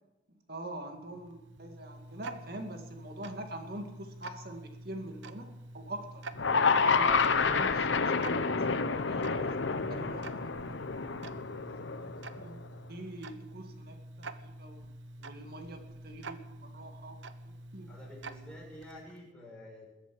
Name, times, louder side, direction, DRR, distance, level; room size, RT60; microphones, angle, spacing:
voice 1, 0.3-6.2 6.6-9.6 9.9-10.7 11.4-11.6 11.9-12.6 12.9-14.8 15.2-17.9, right 1 dB, 55° right, 5 dB, 2.2 m, -45 dB
Tick-tock, 0.9-19.3, right 2 dB, 75° right, 0.9 m, -47 dB
sound 1, 6.3-12.6, left 5 dB, 75° left, 0.8 m, -29 dB
voice 2, 17.9-19.9, left 1 dB, 5° left, -4 dB, 6.0 m, -49 dB
21.0 x 8.1 x 7.7 m, 1.0 s
head